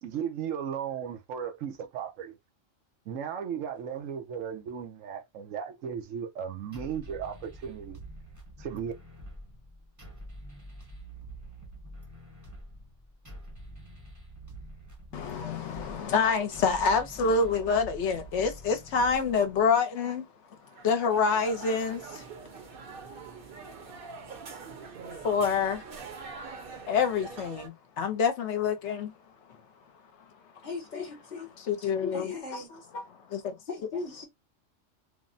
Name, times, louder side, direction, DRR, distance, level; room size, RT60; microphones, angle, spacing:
voice 1, 0.0-2.4 3.1-8.0 8.6-8.9, right 8 dB, 90° right, 1.1 m, -36 dB
sound 1, 6.7-19.7, right 1 dB, 20° right, 0.6 m, -46 dB
voice 2, 15.1-20.2 20.8-22.2 25.2-25.8 26.9-29.1 29.5-29.6 31.6-33.6, left 5 dB, 70° left, 0.8 m, -27 dB
sound 2, 20.7-27.7, right 4 dB, 55° right, 0.7 m, -44 dB
voice 3, 30.6-31.5 32.1-32.7 33.7-34.3, left 4 dB, 40° left, 0.9 m, -38 dB
3.3 x 2.0 x 2.5 m
omnidirectional pair, 1.3 m